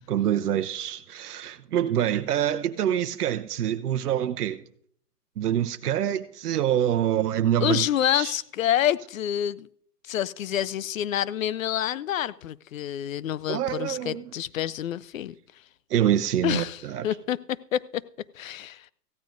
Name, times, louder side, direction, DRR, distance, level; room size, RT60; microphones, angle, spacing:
voice 1, 0.1-4.6 5.4-7.9 8.1-8.3 13.5-14.3 15.9-17.1, right 10 dB, 70° right, 0.8 m, -26 dB
voice 2, 7.6-9.7 10.1-15.4 16.4-18.0 18.3-18.9, left 11 dB, 60° left, 0.5 m, -28 dB
17.0 x 15.0 x 2.6 m
hypercardioid pair, 145°, 47 cm